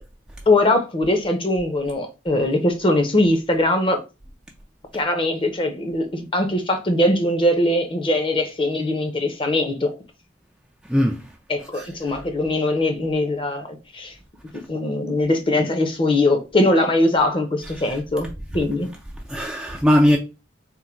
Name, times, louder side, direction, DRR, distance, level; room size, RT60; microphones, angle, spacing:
voice 1, 0.5-4.0 4.9-9.9 11.5-14.1 14.7-18.3 18.5-18.9, left 1 dB, 30° left, 0.7 m, -21 dB
voice 2, 10.9-11.2 11.7-11.9 17.9-18.0 19.3-20.2, equal, 5° right, 0.3 m, -19 dB
3.7 x 2.2 x 4.3 m
head